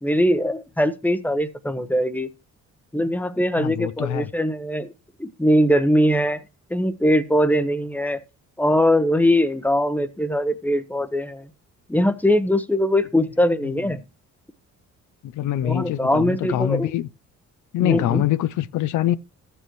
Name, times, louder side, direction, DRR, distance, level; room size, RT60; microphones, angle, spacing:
voice 1, 0.0-2.3 2.9-4.9 5.2-6.4 6.7-8.2 8.6-11.5 11.9-14.0 15.6-16.9 17.8-18.2, equal, 5° left, 0.8 m, -21 dB
voice 2, 3.6-4.3 15.4-17.1 17.7-19.1, left 12 dB, 80° left, 0.5 m, -24 dB
13.5 x 6.9 x 3.0 m
cardioid pair, 90°, 30 cm